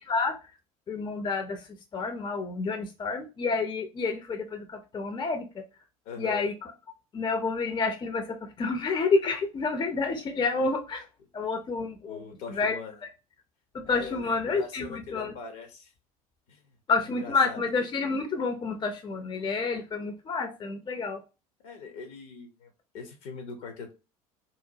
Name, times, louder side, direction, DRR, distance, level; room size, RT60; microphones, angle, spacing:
voice 1, 0.9-5.6 6.2-6.7 7.1-8.2 8.6-11.1 11.3-12.2 12.5-12.8 13.7-15.4 16.9-21.2, left 4 dB, 25° left, 6 dB, 0.5 m, -29 dB
voice 2, 6.0-6.5 12.1-13.0 13.8-15.9 16.5-16.7 17.2-17.6 21.6-23.9, left 5 dB, 65° left, 6 dB, 0.8 m, -42 dB
2.9 x 2.1 x 2.7 m, 0.29 s
figure-of-eight pair, 65°, 19 cm